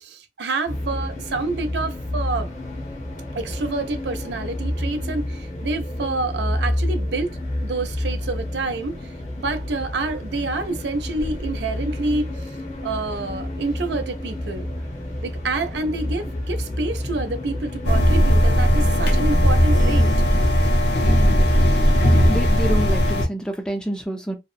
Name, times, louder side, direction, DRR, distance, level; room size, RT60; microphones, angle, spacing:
voice 1, 0.0-2.5 3.3-9.0 9.4-12.3 12.8-14.7 15.2-20.1, right 3 dB, 80° right, 0.5 m, -28 dB
sound 1, 0.7-20.5, left 1 dB, 40° left, 0.7 m, -30 dB
sound 2, 17.8-23.3, equal, 80° left, 0.6 m, -17 dB
voice 2, 22.3-24.3, right 1 dB, 5° left, 0.3 m, -28 dB
2.8 x 2.0 x 2.3 m
head